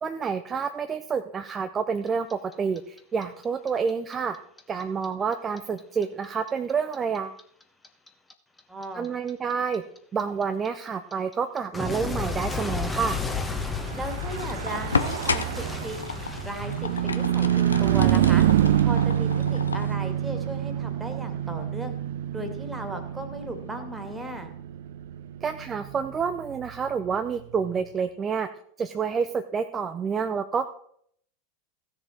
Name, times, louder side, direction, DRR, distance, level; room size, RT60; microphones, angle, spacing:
voice 1, 0.0-4.4 4.7-7.4 8.9-9.8 10.1-13.2 25.4-28.5 28.8-30.7, right 6 dB, 25° right, 7 dB, 0.7 m, -28 dB
Clock, 2.1-5.1 5.3-8.3 8.6-17.4, left 4 dB, 10° left, 1.4 m, -33 dB
voice 2, 8.7-9.1 14.0-16.1 16.4-18.5 18.8-21.9 22.3-24.5, right 1 dB, 10° right, 5 dB, 2.3 m, -36 dB
sound 1, 13.8-19.9, left 5 dB, 85° left, 0.7 m, -33 dB
Car passing by / Truck, 13.9-27.6, right 11 dB, 65° right, 0.6 m, -27 dB
15.5 x 6.8 x 4.5 m, 0.65 s
hypercardioid pair, 90°, 0 cm